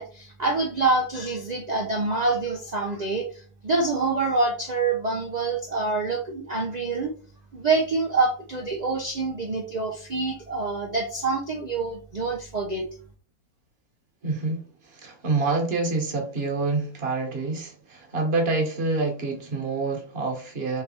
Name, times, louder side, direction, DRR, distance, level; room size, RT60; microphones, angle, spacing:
voice 1, 0.0-7.1 7.5-12.9, right 3 dB, 75° right, 1 dB, 0.3 m, -26 dB
voice 2, 14.2-20.8, right 3 dB, 40° right, 2 dB, 1.3 m, -27 dB
3.5 x 3.3 x 4.2 m, 0.42 s
omnidirectional pair, 1.7 m